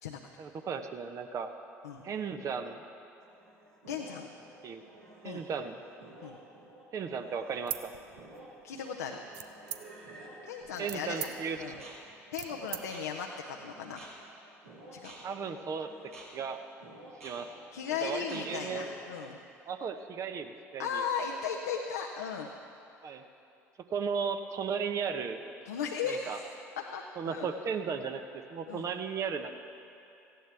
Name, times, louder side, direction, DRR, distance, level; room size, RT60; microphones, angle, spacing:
voice 1, 0.4-1.5 2.0-2.8 4.6-4.8 5.2-5.8 6.9-7.9 10.8-11.6 15.1-15.9 16.3-16.6 17.2-17.6 18.0-18.9 19.7-21.0 23.0-23.3 23.9-25.4 26.1-26.4 27.2-29.5, right 6 dB, 45° right, 7 dB, 0.9 m, -35 dB
sound 1, 3.2-19.1, right 2 dB, 85° right, 2.1 m, -52 dB
voice 2, 3.9-4.3 5.2-5.4 6.2-6.4 8.6-9.2 10.4-11.3 11.6-11.8 12.3-14.0 14.9-15.1 17.7-19.4 20.8-22.5 25.7-26.4 26.8-27.5 28.7-28.9, left 6 dB, 80° left, 1 dB, 0.7 m, -36 dB
sound 2, 7.6-8.6 9.3-10.1 10.6-12.8, right 12 dB, 65° right, 0.6 m, -41 dB
18.0 x 14.5 x 3.5 m, 2.7 s
figure-of-eight pair, 60°, 8 cm